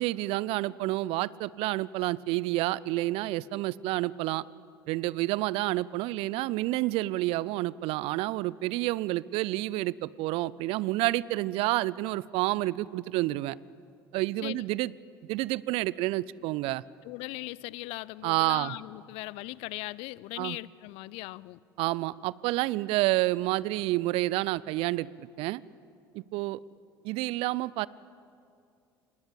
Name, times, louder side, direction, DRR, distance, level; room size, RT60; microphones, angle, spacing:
voice 1, 0.0-4.4 4.9-13.6 14.1-14.9 15.3-16.8 18.2-18.7 20.4-20.6 21.8-25.6 26.1-26.6 27.0-27.9, right 18 dB, 55° right, 22 dB, 0.5 m, -29 dB
voice 2, 17.0-21.6, left 21 dB, 55° left, 23 dB, 0.5 m, -39 dB
27.5 x 20.5 x 8.6 m, 2.4 s
figure-of-eight pair, 60°, 12 cm